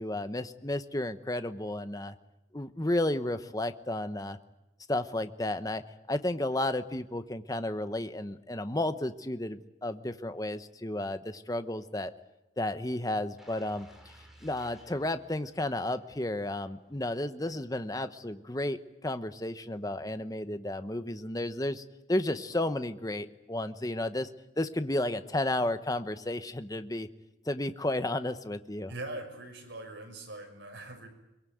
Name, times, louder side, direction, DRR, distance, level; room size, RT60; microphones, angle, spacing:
voice 1, 0.0-2.2 2.5-4.4 4.9-5.8 6.1-12.1 12.6-13.9 14.4-24.3 24.6-27.1 27.5-28.9, left 1 dB, 20° left, 10 dB, 0.9 m, -32 dB
sound 1, 13.4-16.3 16.7-16.9, right 1 dB, ahead, 4.5 m, -57 dB
voice 2, 28.9-31.1, right 2 dB, 75° right, 4 dB, 6.1 m, -42 dB
23.0 x 22.0 x 9.3 m, 0.96 s
head